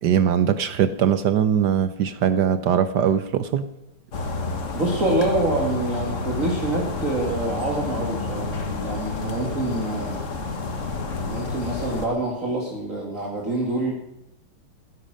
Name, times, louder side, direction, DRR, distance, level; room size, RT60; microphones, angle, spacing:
voice 1, 0.0-3.7, right 8 dB, 65° right, 12 dB, 1.2 m, -21 dB
sound 1, 4.1-12.1, left 3 dB, 40° left, 1.6 m, -29 dB
voice 2, 4.7-8.5 8.8-10.2 11.3-13.9, right 2 dB, 35° right, -2 dB, 2.5 m, -26 dB
17.0 x 10.5 x 6.5 m, 0.87 s
omnidirectional pair, 2.3 m